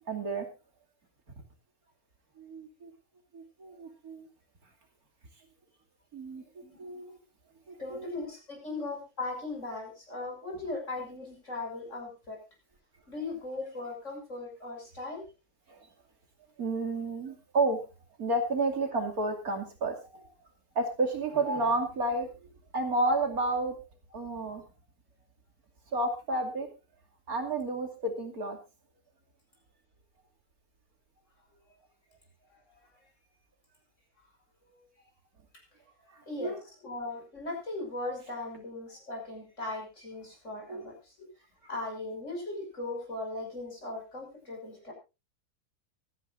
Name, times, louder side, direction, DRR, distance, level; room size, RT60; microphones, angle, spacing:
voice 1, 0.1-0.5 2.4-2.9 3.3-4.3 6.1-6.4 6.8-7.2 7.7-8.1 8.7-8.8 15.7-15.8 16.6-17.9 18.2-20.2 20.7-22.3 22.7-23.8 24.1-24.6 25.9-26.7 27.3-28.6 36.4-36.6 40.7-40.9, right 2 dB, 70° right, 3 dB, 3.1 m, -31 dB
voice 2, 7.8-12.4 13.1-15.2 34.7-34.8 35.5-35.6 36.3-41.3 41.7-44.9, left 2 dB, 50° left, 1 dB, 6.2 m, -38 dB
24.0 x 10.0 x 2.6 m, 0.28 s
omnidirectional pair, 1.6 m